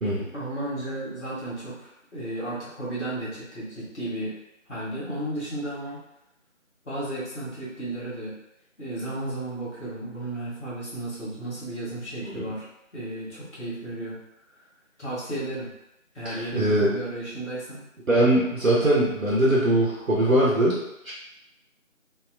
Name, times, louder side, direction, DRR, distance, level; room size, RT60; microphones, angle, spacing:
voice 1, 0.3-4.3 4.7-6.0 6.8-8.4 8.8-12.7 12.9-14.2 15.0-15.7 16.1-17.8, right 1 dB, 60° left, -8 dB, 1.2 m, -33 dB
voice 2, 16.2-16.9 18.1-20.8 21.0-21.1, right 1 dB, 80° right, -6 dB, 0.8 m, -21 dB
2.7 x 2.2 x 2.4 m, 0.86 s
figure-of-eight pair, 175°, 40 cm